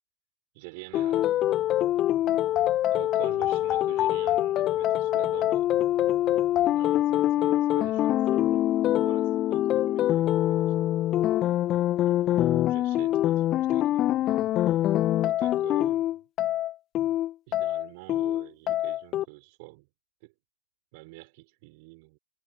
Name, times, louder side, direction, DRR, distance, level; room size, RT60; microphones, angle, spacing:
voice 1, 0.5-1.7 2.9-5.8 6.6-8.7 9.0-11.5 12.1-14.6 15.2-16.2 17.5-19.9 20.2-20.3 20.9-22.2, right 27 dB, 45° right, 4.4 m, -47 dB
sound 1, 0.9-19.2, left 13 dB, 30° left, 1.6 m, -24 dB
figure-of-eight pair, 100°, 0 cm